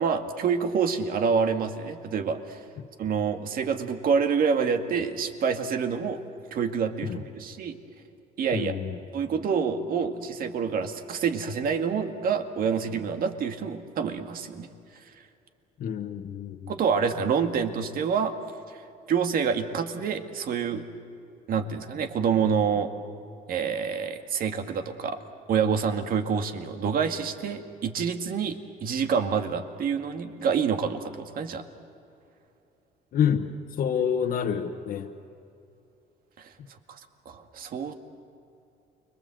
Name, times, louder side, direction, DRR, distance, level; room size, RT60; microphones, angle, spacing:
voice 1, 0.0-2.6 3.0-6.2 6.5-7.8 8.4-8.7 9.1-14.7 16.7-18.4 19.1-20.8 21.5-22.9 23.5-25.2 25.5-31.6 36.4-36.5 36.9-37.0 37.3-37.9, right 6 dB, 60° right, 6 dB, 2.1 m, -27 dB
voice 2, 8.5-9.0 15.8-16.7 33.1-33.5 33.8-35.1, left 8 dB, 60° left, 4 dB, 1.3 m, -27 dB
29.5 x 22.5 x 7.8 m, 2.6 s
cardioid pair, 110°, 17 cm